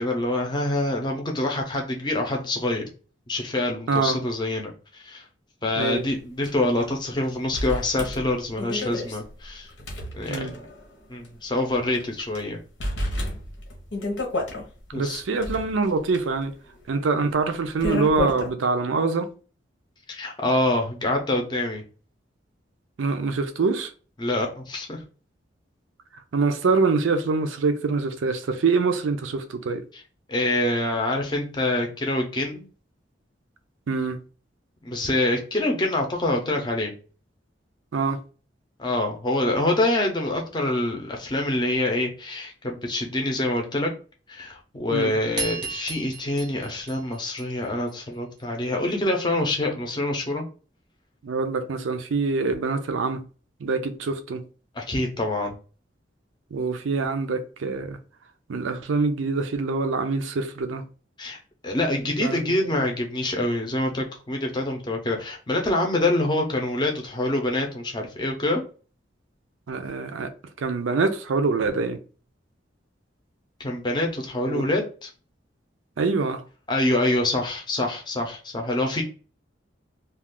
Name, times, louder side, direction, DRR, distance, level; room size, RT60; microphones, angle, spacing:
voice 1, 0.0-2.9 3.3-5.2 5.6-9.7 10.1-10.6 11.1-12.6 14.9-15.2 20.1-21.8 24.2-25.0 30.3-32.7 34.8-36.9 38.8-43.9 44.3-50.4 54.8-55.5 61.2-68.6 73.6-75.1 76.7-79.0, left 1 dB, 25° left, 0.6 m, -26 dB
voice 2, 3.9-4.2 5.8-6.0 10.3-10.5 14.9-16.5 16.9-19.3 23.0-23.9 26.3-29.8 33.9-34.2 37.9-38.2 44.9-45.2 51.2-53.2 53.6-54.4 56.5-58.0 58.5-60.8 62.2-62.8 69.7-70.3 70.6-72.0 74.5-74.7 76.0-76.4, right 4 dB, 90° right, 0.4 m, -25 dB
sound 1, 6.4-6.5 6.8-6.9 7.5-10.9 11.2-11.3 11.9-12.4 12.8-14.6 15.2-18.5, left 2 dB, 80° left, 0.9 m, -31 dB
sound 2, 45.4-47.9, right 4 dB, 25° right, 0.6 m, -34 dB
2.4 x 2.3 x 3.5 m
head